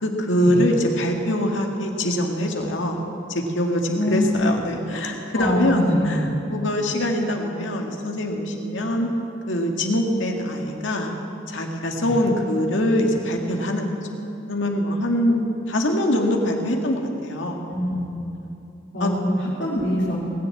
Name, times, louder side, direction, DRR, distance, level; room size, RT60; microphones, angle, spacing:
voice 1, 0.0-3.0 3.3-9.1 9.5-11.1 11.5-13.9 14.5-17.6 19.0-19.1, left 1 dB, 85° left, 2 dB, 1.9 m, -23 dB
voice 2, 3.9-4.4 5.3-6.3 12.0-12.1 17.7-18.1 18.9-20.2, left 1 dB, 70° left, -9 dB, 3.1 m, -24 dB
19.0 x 7.6 x 8.4 m, 2.9 s
head